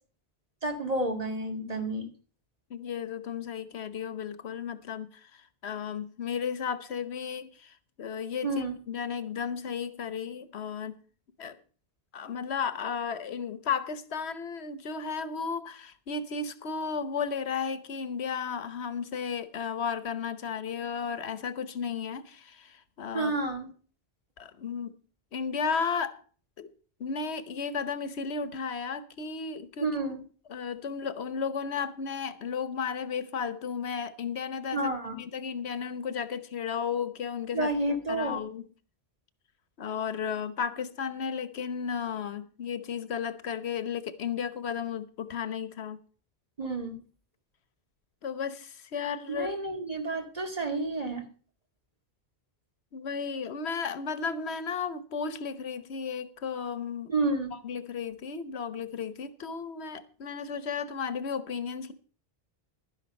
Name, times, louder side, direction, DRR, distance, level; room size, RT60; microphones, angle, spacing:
voice 1, 0.6-2.1 8.4-8.8 23.1-23.7 29.8-30.2 34.7-35.2 37.5-38.4 46.6-47.0 49.3-51.3 57.1-57.5, right 2 dB, 35° right, 2.2 m, -30 dB
voice 2, 2.7-11.0 11.4-11.6 12.1-23.3 24.4-24.9 25.3-26.2 26.6-26.7 27.0-29.9 30.5-37.7 38.1-38.6 39.8-46.0 48.2-49.5 52.9-57.1 57.5-61.9, left 6 dB, 85° left, 1.3 m, -34 dB
11.5 x 10.5 x 5.3 m
omnidirectional pair, 1.1 m